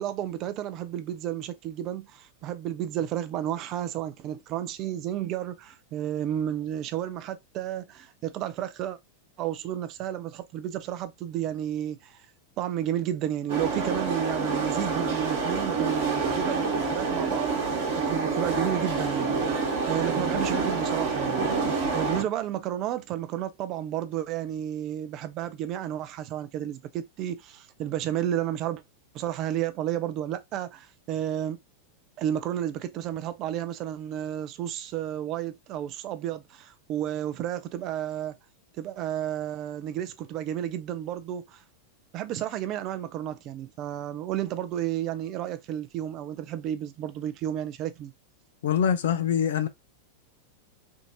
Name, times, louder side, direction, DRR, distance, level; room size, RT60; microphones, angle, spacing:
voice 1, 0.0-9.0 9.4-12.2 12.6-19.5 19.9-28.8 29.1-31.6 32.2-38.4 38.7-41.6 42.1-48.1, right 11 dB, 35° right, 0.4 m, -32 dB
sound 1, 13.5-22.2, right 4 dB, 50° right, 1.2 m, -27 dB
voice 2, 48.6-49.7, left 8 dB, 60° left, 0.4 m, -24 dB
3.5 x 2.5 x 2.8 m
figure-of-eight pair, 90°, 0 cm